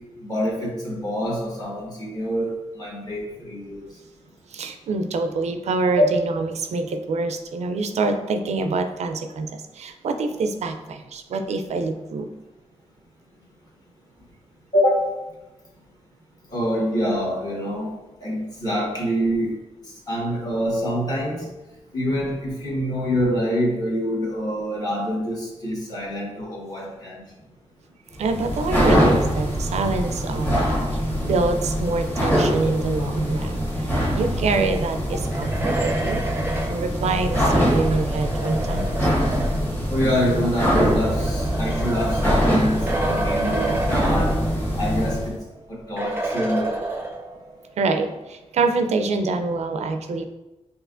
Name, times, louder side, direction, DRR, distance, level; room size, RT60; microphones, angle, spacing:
voice 1, 0.2-3.9 6.0-6.1 14.7-15.2 16.5-17.9 18.2-19.5 19.9-21.5 21.9-27.2 39.9-44.3 44.7-45.4 45.7-46.8, equal, 35° left, -4 dB, 1.4 m, -25 dB
voice 2, 4.5-12.3 28.2-30.6 30.9-39.1 41.2-41.3 47.8-50.3, right 3 dB, 75° right, 7 dB, 0.4 m, -26 dB
sound 1, 28.1-45.3, equal, 15° left, 1.3 m, -23 dB
sound 2, 35.1-39.8 40.7-44.9 45.2-45.3 46.0-47.5, right 2 dB, 20° right, 0.5 m, -30 dB
5.4 x 2.8 x 2.5 m, 1.0 s
cardioid pair, 85°, 12 cm